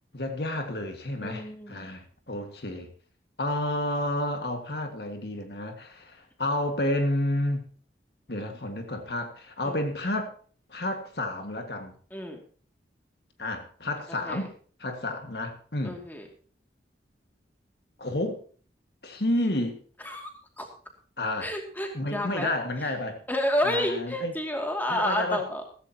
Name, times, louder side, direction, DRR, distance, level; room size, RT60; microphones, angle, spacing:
voice 1, 0.1-2.9 3.4-7.7 8.3-10.3 10.7-11.9 13.4-14.5 14.8-16.0 18.0-18.4 19.0-19.8 21.2-21.5 21.9-23.2 23.6-24.3 24.9-25.4, left 1 dB, 60° left, 1.9 m, -30 dB
voice 2, 1.2-1.9 9.6-9.8 12.1-12.4 14.1-14.5 15.8-16.3 20.0-20.3 20.6-20.7 21.4-22.5 23.3-25.6, equal, 10° left, 2.4 m, -30 dB
15.5 x 15.0 x 2.9 m
head